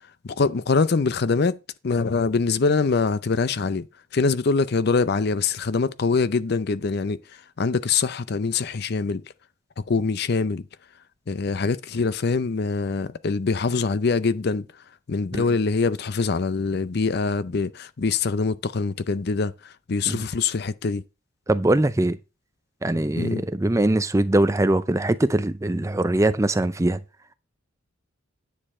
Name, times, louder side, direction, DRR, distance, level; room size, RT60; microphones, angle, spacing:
voice 1, 0.2-1.6 1.8-3.9 4.1-7.2 7.6-9.2 9.9-10.6 11.3-14.7 15.1-21.0 23.2-23.4, left 4 dB, 50° left, 0.5 m, -24 dB
voice 2, 21.5-22.2 22.8-27.0, right 1 dB, 15° right, 0.5 m, -22 dB
10.0 x 6.8 x 4.2 m
head